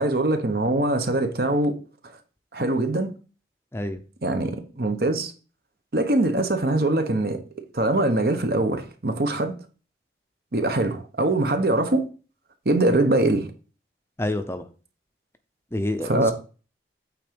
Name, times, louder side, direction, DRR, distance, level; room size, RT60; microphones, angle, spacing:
voice 1, 0.0-1.7 2.5-3.1 4.2-5.3 5.9-7.4 7.7-9.5 10.5-12.0 12.6-13.5 16.0-16.3, right 2 dB, 60° right, 1.1 m, -22 dB
voice 2, 14.2-14.6 15.7-16.3, left 1 dB, 15° left, 0.5 m, -28 dB
8.7 x 3.8 x 5.2 m
head